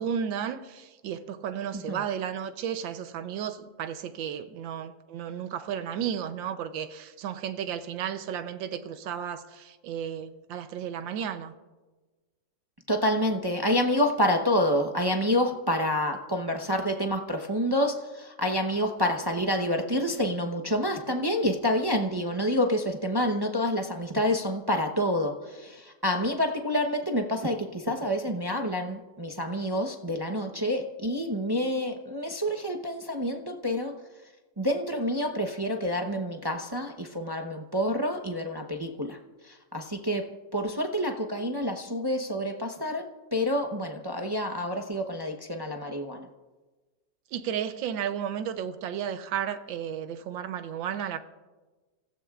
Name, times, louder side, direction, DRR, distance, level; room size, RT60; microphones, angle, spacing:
voice 1, 0.0-11.5 47.3-51.2, right 8 dB, 85° right, 1.5 m, -33 dB
voice 2, 12.9-34.0 34.6-46.3, equal, 30° right, 0.4 m, -28 dB
29.5 x 15.5 x 2.4 m
omnidirectional pair, 2.0 m